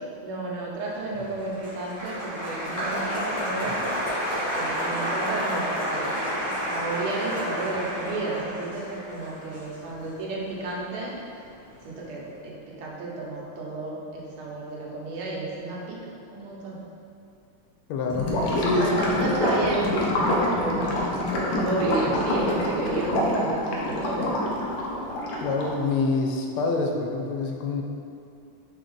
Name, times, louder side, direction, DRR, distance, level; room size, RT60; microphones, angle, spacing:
voice 1, 0.2-3.8 4.5-6.2 6.5-11.1 11.8-16.8 18.7-20.0 20.6-21.0 21.5-24.3, right 2 dB, 80° right, -4 dB, 1.7 m, -32 dB
Applause, 1.0-11.4 11.7-12.3, equal, 40° left, 1.6 m, -30 dB
voice 2, 17.9-18.3 18.6-19.1 25.4-27.8, left 3 dB, 90° left, 2 dB, 1.5 m, -26 dB
Gurgling / Liquid, 18.1-25.8, left 1 dB, 75° left, 0.8 m, -26 dB
3.9 x 3.5 x 3.8 m, 2.5 s
omnidirectional pair, 2.3 m